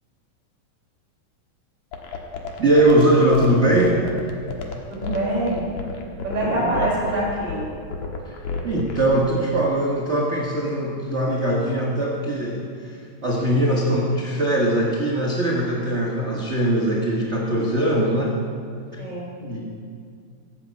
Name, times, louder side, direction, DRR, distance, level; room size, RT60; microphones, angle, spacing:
sound 1, 1.9-9.2, left 5 dB, 60° left, 2.5 m, -31 dB
voice 1, 2.6-4.0 6.4-6.9 8.2-8.3 8.6-18.4 19.4-19.7, right 1 dB, 50° right, -2 dB, 0.8 m, -21 dB
voice 2, 4.9-5.7 6.2-7.7 19.0-19.3, right 1 dB, 30° right, -6 dB, 5.0 m, -25 dB
16.5 x 7.9 x 8.2 m, 2.3 s
omnidirectional pair, 4.0 m